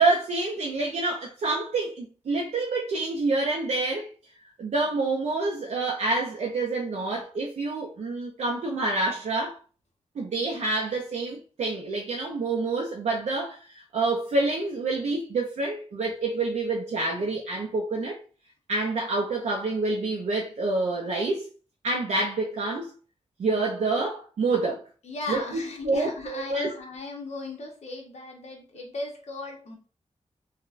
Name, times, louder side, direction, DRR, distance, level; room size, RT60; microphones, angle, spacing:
voice 1, 0.0-4.1 4.6-9.6 10.2-18.2 18.7-21.4 21.8-22.9 23.4-24.8 25.3-26.7, right 3 dB, 70° right, 0.4 m, -27 dB
voice 2, 25.0-29.8, left 2 dB, 65° left, 0.9 m, -37 dB
3.9 x 2.1 x 2.4 m
wide cardioid pair, 140°, 12 cm